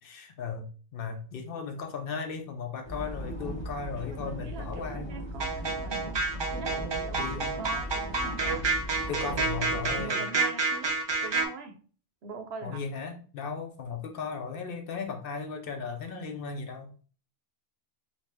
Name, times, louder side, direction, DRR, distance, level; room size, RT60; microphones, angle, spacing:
voice 1, 0.0-5.1 7.2-7.6 9.1-10.2 12.6-17.0, left 5 dB, 65° left, 5 dB, 0.7 m, -36 dB
sound 1, 2.8-10.0, equal, 30° left, 0.6 m, -38 dB
voice 2, 3.9-8.6 9.2-9.5 9.9-11.0 11.2-11.7 12.2-12.8, right 4 dB, 75° right, 5 dB, 0.9 m, -43 dB
sound 2, 5.4-11.5, right 3 dB, 40° right, 0.4 m, -29 dB
2.7 x 2.5 x 3.3 m, 0.39 s
omnidirectional pair, 1.1 m